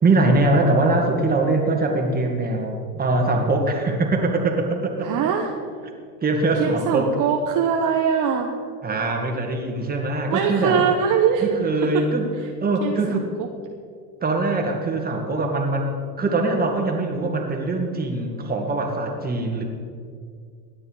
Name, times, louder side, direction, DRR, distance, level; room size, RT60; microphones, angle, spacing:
voice 1, 0.0-5.1 6.2-7.1 8.8-10.8 11.4-12.2 12.6-13.3 14.2-19.6, right 2 dB, 20° right, 2 dB, 2.3 m, -22 dB
voice 2, 5.0-5.5 6.5-8.5 10.3-11.5 11.8-12.0 12.8-13.5, right 7 dB, 40° right, 2 dB, 1.2 m, -22 dB
16.5 x 9.8 x 4.9 m, 2.1 s
supercardioid pair, 110°, 48 cm